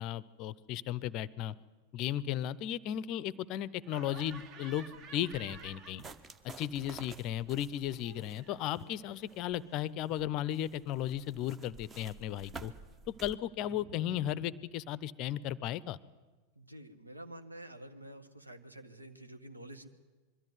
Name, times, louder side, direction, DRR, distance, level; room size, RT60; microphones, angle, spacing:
voice 1, 0.0-1.5 1.9-6.0 6.6-12.7 13.1-16.0, left 11 dB, 40° left, 20 dB, 0.5 m, -35 dB
Laughter, 3.8-6.6 6.9-9.8, right 6 dB, 35° right, 1.1 m, -53 dB
sound 1, 4.1-13.4, right 3 dB, 20° right, 0.9 m, -52 dB
sound 2, 10.8-11.7 11.9-12.0 12.4-14.5, equal, 65° right, 6.6 m, -53 dB
voice 2, 16.6-19.9, right 1 dB, 85° right, 8 dB, 1.3 m, -49 dB
22.0 x 13.5 x 9.5 m, 1.3 s
figure-of-eight pair, 90°, 0 cm